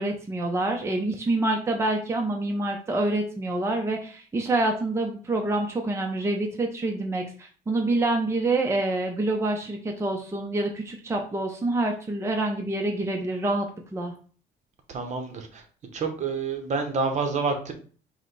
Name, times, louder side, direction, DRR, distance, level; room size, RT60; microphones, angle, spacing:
voice 1, 0.0-13.7 13.9-14.1, right 2 dB, 15° right, 2 dB, 0.6 m, -27 dB
voice 2, 14.9-15.6 15.9-17.7, right 4 dB, 45° right, 5 dB, 0.9 m, -28 dB
4.9 x 2.2 x 4.0 m, 0.42 s
cardioid pair, 110°, 17 cm